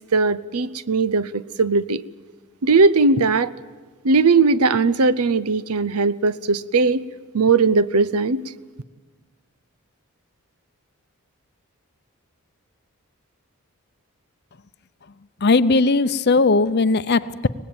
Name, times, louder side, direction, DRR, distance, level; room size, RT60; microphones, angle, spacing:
voice 1, 0.1-2.0 2.6-3.5 4.0-7.1 7.3-8.4, right 4 dB, 80° right, 17 dB, 0.7 m, -18 dB
voice 2, 15.4-17.5, left 3 dB, 45° left, 14 dB, 0.7 m, -18 dB
24.5 x 19.0 x 8.8 m, 1.4 s
head